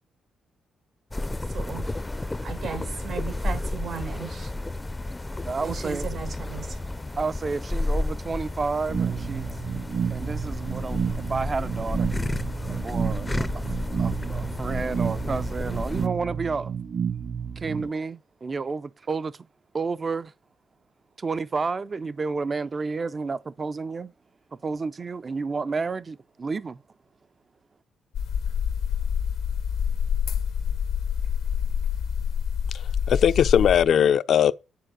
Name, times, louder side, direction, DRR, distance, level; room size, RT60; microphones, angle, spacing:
sound 1, 1.1-16.1, left 2 dB, 15° left, 0.5 m, -31 dB
voice 1, 1.5-4.5 5.6-6.8, right 7 dB, 75° right, 1.5 m, -36 dB
voice 2, 5.4-6.1 7.2-9.5 10.1-12.1 12.8-16.8 17.6-19.4 19.7-20.3 21.2-24.1 24.6-26.8, right 4 dB, 35° right, 0.4 m, -31 dB
sound 2, 8.9-17.9, right 7 dB, 50° right, 1.1 m, -30 dB
sound 3, 28.1-33.8, left 7 dB, 80° left, 1.0 m, -27 dB
voice 3, 32.7-34.5, left 8 dB, 65° left, 0.5 m, -20 dB
10.0 x 4.6 x 6.2 m
cardioid pair, 90°, 0 cm